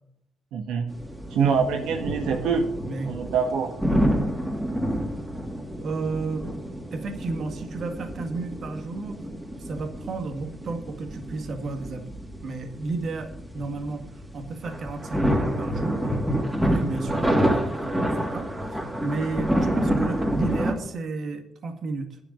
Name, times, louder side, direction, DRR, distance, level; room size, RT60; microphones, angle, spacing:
voice 1, 0.5-0.9 1.3-2.7 3.0-3.7, right 6 dB, 85° right, 4 dB, 1.5 m, -25 dB
sound 1, 0.9-20.8, equal, 10° right, 2.8 m, -28 dB
voice 2, 5.8-6.5 6.9-9.3 9.6-12.1 12.4-16.2 16.6-22.2, right 3 dB, 55° right, 6 dB, 1.9 m, -33 dB
10.5 x 7.0 x 8.8 m, 0.77 s
cardioid pair, 90°, 0 cm